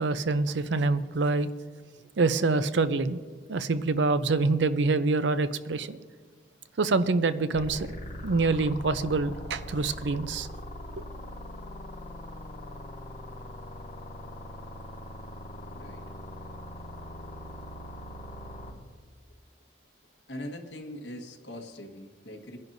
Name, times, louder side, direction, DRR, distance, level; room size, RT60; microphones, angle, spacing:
voice 1, 0.0-1.5 2.2-3.2 3.5-6.0 6.8-7.9 8.2-10.5, right 3 dB, 75° right, 12 dB, 0.6 m, -26 dB
sound 1, 7.5-18.7, left 1 dB, 40° left, 2.4 m, -41 dB
voice 2, 20.3-22.6, left 1 dB, 70° left, 2 dB, 1.5 m, -41 dB
23.0 x 10.5 x 2.7 m, 1.5 s
head